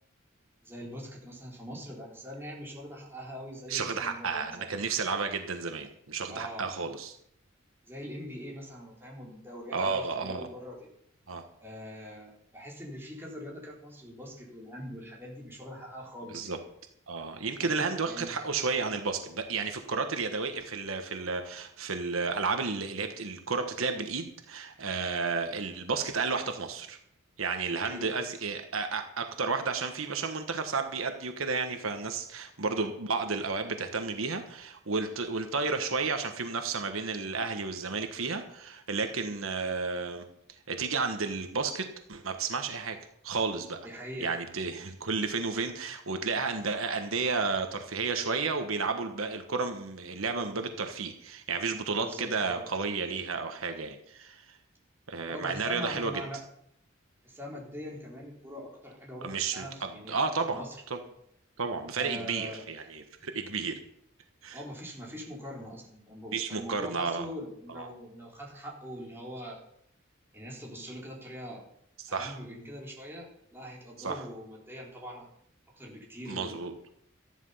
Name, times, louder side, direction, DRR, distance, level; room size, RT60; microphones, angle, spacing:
voice 1, 0.6-4.7 6.3-6.7 7.8-10.9 11.6-16.6 17.6-18.3 27.8-28.1 43.8-44.4 52.0-52.6 55.3-56.5 57.2-60.2 60.5-60.8 62.0-62.7 64.5-69.6 70.3-71.7 72.1-75.3 75.7-76.6, equal, 10° right, -2 dB, 3.8 m, -42 dB
voice 2, 3.7-7.2 9.7-10.5 11.3-11.4 16.3-16.6 17.1-27.0 27.4-40.2 40.7-43.0 43.2-43.8 44.2-54.6 55.1-56.1 59.2-61.0 61.6-63.8 64.4-64.6 66.3-67.3 67.7-67.9 72.0-72.4 74.0-74.2 76.3-76.7, right 4 dB, 75° right, 6 dB, 1.3 m, -32 dB
13.5 x 11.0 x 5.7 m, 0.72 s
head